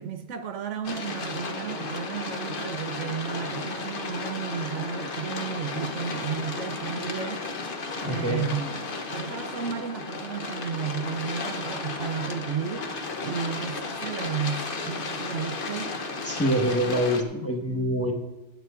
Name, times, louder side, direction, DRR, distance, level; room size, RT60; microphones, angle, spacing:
voice 1, 0.0-7.4 8.0-16.0, right 7 dB, 75° right, 1.0 m, -33 dB
sound 1, 0.8-17.2, left 3 dB, 50° left, 1.1 m, -34 dB
voice 2, 8.0-8.5 16.2-18.1, equal, 10° left, 1.3 m, -25 dB
23.5 x 9.0 x 2.5 m
omnidirectional pair, 1.3 m